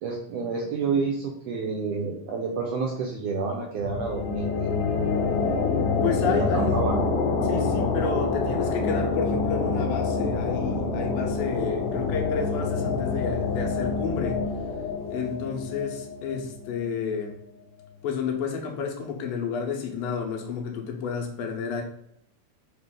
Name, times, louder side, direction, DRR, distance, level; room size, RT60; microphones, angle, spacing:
voice 1, 0.0-4.7 6.2-7.0, right 4 dB, 80° right, 0 dB, 1.4 m, -29 dB
sound 1, 3.8-17.2, left 4 dB, 90° left, 2.2 m, -27 dB
voice 2, 6.0-6.8 7.4-14.4 15.1-17.4 18.0-21.8, left 5 dB, 75° left, 2 dB, 1.7 m, -31 dB
5.0 x 2.5 x 3.7 m, 0.73 s
omnidirectional pair, 3.4 m